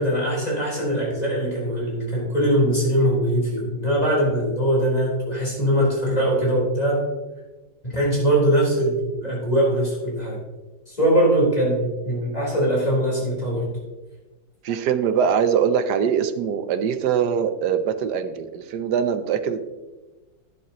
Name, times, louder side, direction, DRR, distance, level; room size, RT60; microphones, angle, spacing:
voice 1, 0.0-7.1 7.8-10.4 10.9-13.7, right 1 dB, 20° left, -6 dB, 4.2 m, -21 dB
voice 2, 14.6-19.6, right 7 dB, 65° right, 10 dB, 1.2 m, -22 dB
11.5 x 10.5 x 3.0 m, 1.2 s
omnidirectional pair, 2.2 m